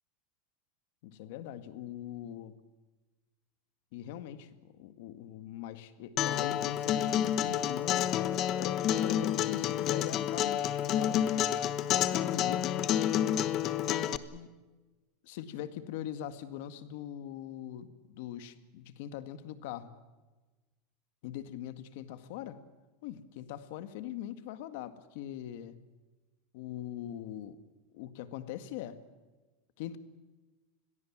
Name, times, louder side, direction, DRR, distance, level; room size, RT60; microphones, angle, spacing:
voice 1, 1.0-2.5 3.9-8.1 8.6-11.4 11.9-12.9 14.0-14.5 15.2-19.9 21.2-22.6 23.0-25.8 26.5-27.6 27.9-29.0 29.8-30.0, left 11 dB, 55° left, 11 dB, 1.9 m, -42 dB
Acoustic guitar, 6.2-14.2, left 10 dB, 30° left, 1.0 m, -29 dB
28.0 x 21.5 x 7.5 m, 1.2 s
supercardioid pair, 175°, 0 cm